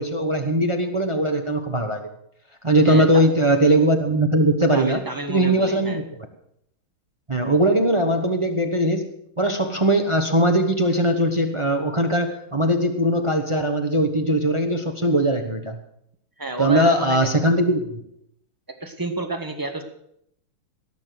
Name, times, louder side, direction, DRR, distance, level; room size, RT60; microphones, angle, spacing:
voice 1, 0.0-2.1 2.6-5.0 5.3-6.0 7.3-9.1 9.4-15.8 16.6-18.0, right 1 dB, 30° right, 6 dB, 0.5 m, -20 dB
voice 2, 4.7-6.0 16.4-17.2 18.8-19.8, right 3 dB, 10° right, 5 dB, 1.2 m, -29 dB
18.0 x 6.9 x 7.8 m, 0.74 s
omnidirectional pair, 2.4 m